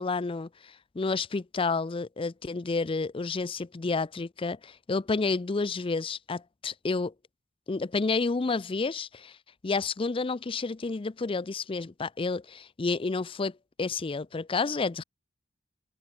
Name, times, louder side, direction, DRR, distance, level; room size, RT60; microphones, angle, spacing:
voice 1, 0.0-7.1 7.7-9.4 9.6-15.0, left 4 dB, 25° left, 0.5 m, -30 dB
head